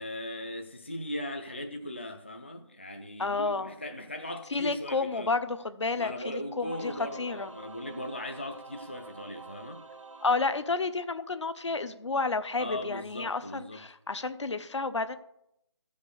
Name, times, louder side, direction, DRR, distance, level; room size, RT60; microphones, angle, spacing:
voice 1, 0.0-5.3 5.9-9.8 12.6-13.9, left 1 dB, 25° left, 0.4 m, -38 dB
voice 2, 3.2-3.7 4.5-6.9 7.2-7.5 10.2-15.2, left 3 dB, 65° left, 0.9 m, -31 dB
Singing / Musical instrument, 6.6-11.4, right 3 dB, 90° right, 1.0 m, -48 dB
14.5 x 5.2 x 6.4 m
figure-of-eight pair, 175°, 16 cm